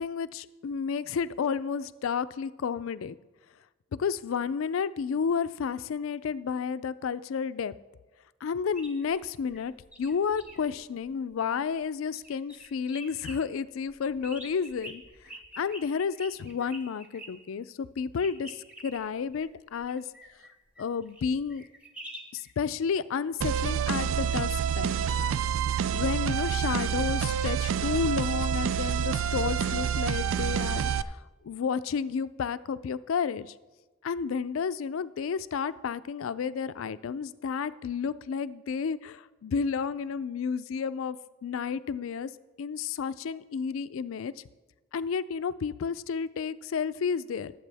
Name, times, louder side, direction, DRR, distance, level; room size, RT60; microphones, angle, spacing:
voice 1, 0.0-3.2 4.0-7.7 8.4-9.7 10.0-15.0 15.6-18.6 18.8-20.1 20.8-21.6 22.3-24.9 25.9-33.5 34.0-42.3 42.6-44.3 44.9-47.5, left 6 dB, 80° left, 15 dB, 0.4 m, -31 dB
sound 1, 8.7-11.8 12.1-13.4 13.8-17.3 18.2-22.5 28.3-28.4, equal, 5° right, 1.1 m, -47 dB
sound 2, 23.4-31.0, right 8 dB, 75° right, 0.3 m, -28 dB
19.0 x 7.7 x 3.4 m, 1.2 s
head